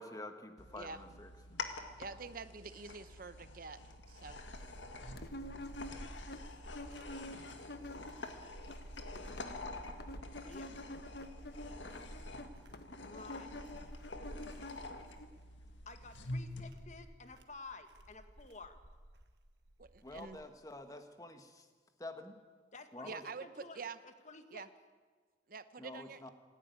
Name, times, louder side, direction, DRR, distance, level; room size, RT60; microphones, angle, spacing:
voice 1, 0.0-1.3 20.0-21.7 22.0-22.4 22.9-23.2 25.8-26.3, left 1 dB, 20° left, 7 dB, 1.5 m, -48 dB
sound 1, 0.6-16.6, left 2 dB, 85° left, 2.0 m, -48 dB
voice 2, 2.0-4.4 19.8-20.4 23.0-24.0 24.5-24.7 25.5-26.3, right 4 dB, 50° right, 12 dB, 0.8 m, -47 dB
sound 2, 3.8-20.6, right 1 dB, 65° right, 1.6 m, -53 dB
sound 3, 5.2-8.3 8.6-15.3, left 1 dB, 60° left, 1.0 m, -48 dB
voice 3, 13.0-13.6 15.8-18.8 22.7-24.7, left 3 dB, 40° left, 8 dB, 1.4 m, -52 dB
26.5 x 11.0 x 9.5 m, 1.5 s
head